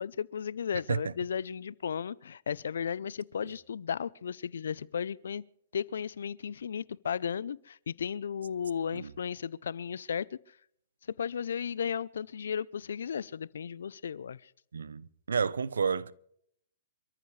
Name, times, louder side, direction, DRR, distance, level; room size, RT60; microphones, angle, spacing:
voice 1, 0.0-5.4 5.7-10.4 11.2-14.5, left 7 dB, 75° left, 0.6 m, -35 dB
voice 2, 14.7-16.1, right 6 dB, 85° right, 0.8 m, -31 dB
27.5 x 14.0 x 3.3 m
hypercardioid pair, 135°, 0 cm